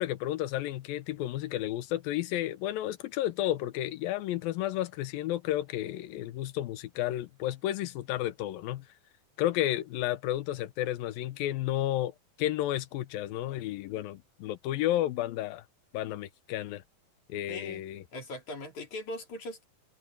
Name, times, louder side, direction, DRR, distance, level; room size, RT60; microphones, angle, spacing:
voice 1, 0.0-8.9 9.4-15.6 15.9-16.8 17.3-18.0, left 13 dB, 80° left, 2.7 m, -32 dB
voice 2, 17.5-17.8 18.1-19.6, left 1 dB, 55° left, 5.4 m, -40 dB
omnidirectional pair, 4.1 m